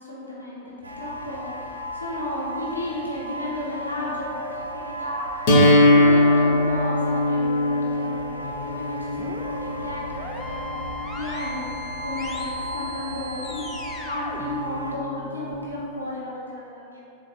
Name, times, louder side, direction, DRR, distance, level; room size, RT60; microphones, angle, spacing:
voice 1, 0.0-5.4 5.7-17.0, left 1 dB, 85° left, -6 dB, 0.7 m, -33 dB
sound 1, 0.8-14.9, equal, 80° right, 0.3 m, -35 dB
sound 2, 5.5-11.4, left 1 dB, 50° left, 0.7 m, -21 dB
sound 3, 8.4-15.6, left 1 dB, 20° left, 0.4 m, -39 dB
3.8 x 2.4 x 4.1 m, 2.5 s
figure-of-eight pair, 90°, 0 cm